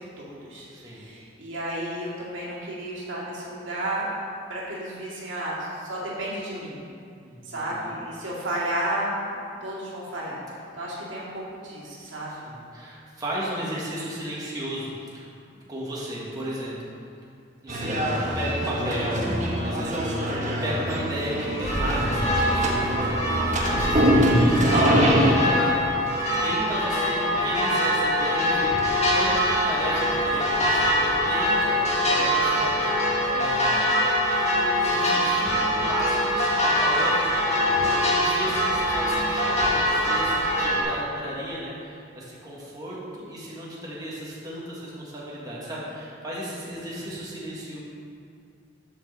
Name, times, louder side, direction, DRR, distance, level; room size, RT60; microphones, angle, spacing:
voice 1, 0.0-4.1 4.5-6.8 7.4-9.3 9.6-10.4 10.8-12.5 46.8-47.2, right 1 dB, 80° right, -6 dB, 2.1 m, -32 dB
voice 2, 0.7-1.1 7.2-8.0 12.5-15.2 15.7-16.7 17.6-19.3 19.5-20.3 20.6-23.1 23.7-24.0 24.6-25.8 26.4-34.1 34.7-47.8, equal, 20° right, -7 dB, 1.5 m, -34 dB
sound 1, 17.7-25.3, equal, 40° right, 1.2 m, -24 dB
sound 2, 21.6-40.8, equal, 35° left, 1.2 m, -23 dB
7.8 x 4.6 x 6.6 m, 2.4 s
head